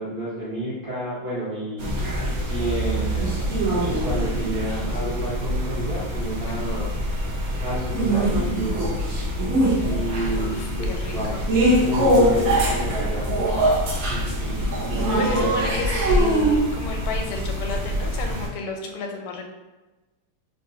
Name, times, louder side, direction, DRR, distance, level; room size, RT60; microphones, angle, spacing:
voice 1, 0.0-2.0 2.4-3.5 3.9-6.9 7.6-9.0 9.8-11.4 11.7-13.3 14.1-15.8, right 1 dB, 50° right, -9 dB, 1.4 m, -30 dB
sound 1, 1.8-18.5, right 1 dB, 70° right, 0.8 m, -23 dB
voice 2, 10.3-11.4 15.2-19.5, left 4 dB, 90° left, 3 dB, 1.5 m, -33 dB
3.6 x 2.4 x 2.7 m, 1.1 s
omnidirectional pair, 2.4 m